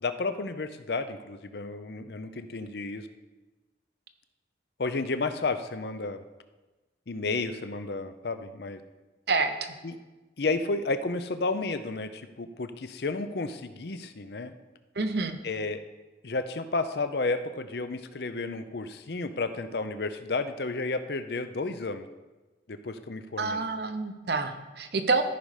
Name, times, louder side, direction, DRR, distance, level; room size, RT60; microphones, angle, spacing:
voice 1, 0.0-3.1 4.8-6.2 7.1-8.8 9.8-10.0 10.4-14.5 15.4-15.8 16.2-22.1 22.7-23.6, left 3 dB, 60° left, 10 dB, 0.6 m, -32 dB
voice 2, 15.0-15.4 23.4-25.2, right 3 dB, 60° right, 8 dB, 0.8 m, -27 dB
13.5 x 5.4 x 4.9 m, 1.2 s
head